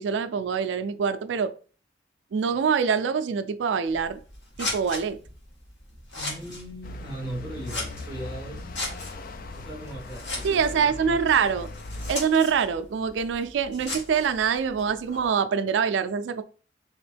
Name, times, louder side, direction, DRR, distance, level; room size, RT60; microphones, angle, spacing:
voice 1, 0.0-1.5 2.3-4.2 4.6-5.2 10.4-11.7 12.1-16.4, right 6 dB, 80° right, 0.3 m, -25 dB
Scissors, 3.8-15.3, left 2 dB, 75° left, 1.3 m, -38 dB
voice 2, 6.2-8.7 9.6-11.2, right 1 dB, 25° left, 1.5 m, -39 dB
sound 1, 6.8-12.1, left 2 dB, 50° left, 0.4 m, -39 dB
3.5 x 2.9 x 3.3 m
head